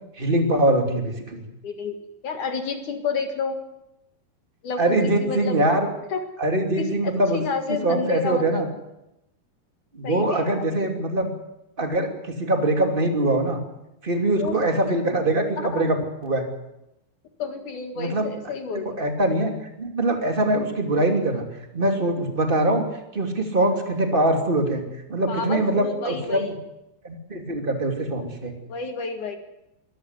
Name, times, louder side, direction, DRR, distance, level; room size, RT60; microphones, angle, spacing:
voice 1, 0.2-1.4 4.8-5.9 6.4-7.4 7.7-8.7 9.9-11.3 11.8-13.6 14.0-16.5 18.0-18.2 18.7-19.5 19.8-21.4 21.7-22.8 23.1-24.8 25.1-26.5 27.0-28.5, right 1 dB, 15° right, 4 dB, 2.2 m, -23 dB
voice 2, 1.6-2.0 2.2-3.6 4.6-5.6 6.1-6.2 6.8-8.7 10.0-10.7 14.4-14.6 15.6-15.8 17.4-19.0 25.3-26.5 28.7-29.4, left 4 dB, 55° left, 6 dB, 2.9 m, -30 dB
24.0 x 14.0 x 9.6 m, 0.88 s
omnidirectional pair, 4.8 m